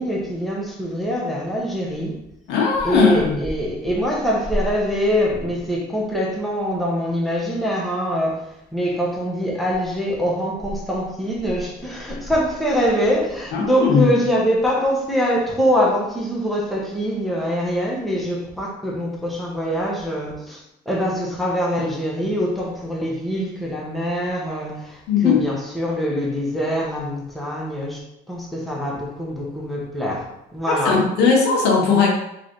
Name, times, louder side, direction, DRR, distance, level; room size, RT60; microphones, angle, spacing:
voice 1, 0.0-2.2 2.8-28.0 28.3-30.2 30.5-31.0, equal, ahead, 1.2 m, -24 dB
voice 2, 2.5-3.3 13.5-14.1 25.1-25.4 30.7-32.1, left 5 dB, 85° left, 1.2 m, -18 dB
3.8 x 3.2 x 3.9 m
cardioid pair, 110°, 17 cm